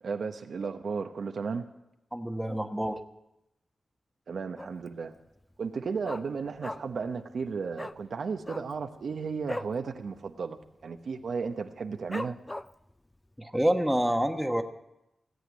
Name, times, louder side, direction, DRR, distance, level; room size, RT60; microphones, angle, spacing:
voice 1, 0.0-1.7 4.3-5.1 5.6-12.4, right 5 dB, 75° right, 6 dB, 1.0 m, -34 dB
voice 2, 2.1-3.0 13.4-14.6, equal, 5° right, 5 dB, 1.2 m, -27 dB
Dog, 4.6-5.0 5.3-5.4 5.6-7.1 7.3-7.5 7.7-8.0 8.4-9.8 10.1-10.3 10.6-11.0 11.4-11.5 12.1-12.9 13.4-13.5, left 1 dB, 15° left, 0.5 m, -38 dB
17.5 x 8.1 x 9.3 m, 0.88 s
wide cardioid pair, 85°, 0 cm